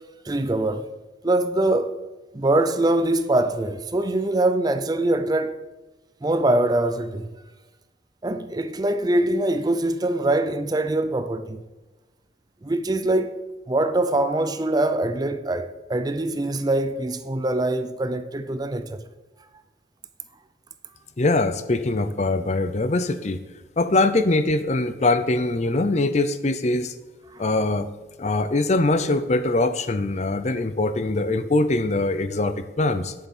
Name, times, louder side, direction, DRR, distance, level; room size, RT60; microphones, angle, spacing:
voice 1, 0.3-0.9 1.2-2.0 2.3-5.5 6.2-7.3 8.2-11.6 12.6-13.4 13.7-19.0 27.3-27.4, right 1 dB, 20° right, 0.4 m, -23 dB
voice 2, 21.2-23.4 23.8-26.9 27.4-27.9 28.2-33.1, left 2 dB, 35° left, 0.6 m, -22 dB
9.8 x 7.3 x 5.4 m
head